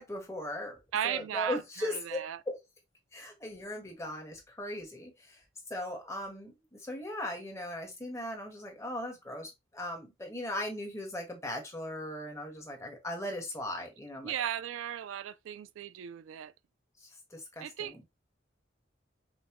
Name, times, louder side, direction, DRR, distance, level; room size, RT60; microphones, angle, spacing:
voice 1, 0.0-0.8 1.0-2.2 2.4-2.6 3.1-5.4 5.7-14.3 17.3-18.0, left 1 dB, 15° left, 1.2 m, -38 dB
voice 2, 0.9-2.4 14.2-16.5 17.6-18.0, right 10 dB, 85° right, 0.3 m, -36 dB
5.4 x 2.1 x 2.9 m
head